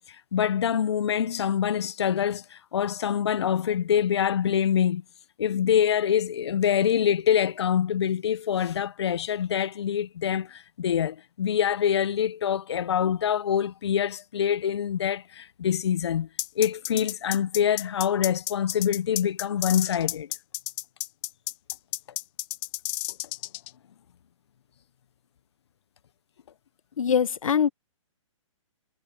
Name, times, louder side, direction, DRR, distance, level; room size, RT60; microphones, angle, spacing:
voice 1, 0.0-5.0 5.4-16.3 16.6-20.3, left 9 dB, 55° left, 0.7 m, -25 dB
sound 1, 16.4-23.7, left 19 dB, 15° left, 1.2 m, -32 dB
voice 2, 27.0-27.7, left 7 dB, 80° left, 0.8 m, -22 dB
hypercardioid pair, 170°, 17 cm